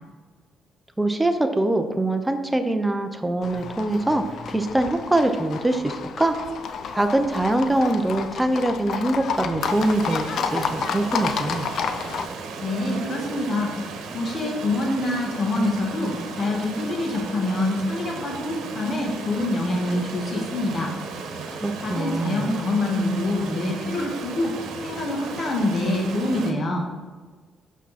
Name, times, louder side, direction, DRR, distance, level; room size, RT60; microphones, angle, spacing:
voice 1, 1.0-6.4 6.9-10.3 10.5-11.6 21.6-22.5, right 1 dB, 10° right, 7 dB, 0.8 m, -23 dB
Livestock farm animals working animals, 3.4-12.3, left 6 dB, 65° left, 0.5 m, -31 dB
Stream, 9.6-26.5, right 4 dB, 85° right, 1.1 m, -35 dB
voice 2, 12.6-13.7 14.1-20.9 21.8-24.5 24.8-26.8, left 2 dB, 45° left, 0 dB, 1.6 m, -25 dB
6.1 x 5.9 x 4.2 m, 1.4 s
cardioid pair, 90°, 0 cm